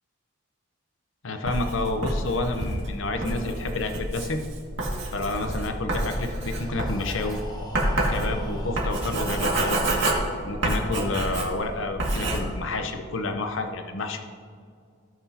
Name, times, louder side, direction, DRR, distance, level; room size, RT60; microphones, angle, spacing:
voice 1, 1.2-4.4 5.1-7.4 8.1-9.8 10.5-14.2, left 2 dB, 60° left, 5 dB, 0.7 m, -29 dB
Writing, 1.5-11.7 12.0-12.4, right 1 dB, 60° right, 2.0 m, -28 dB
sound 1, 2.6-6.3 6.5-6.7, right 1 dB, 90° right, 1.7 m, -39 dB
Breathing, 6.2-10.0, left 1 dB, 20° left, 0.9 m, -43 dB
17.0 x 6.0 x 2.8 m, 2.2 s
head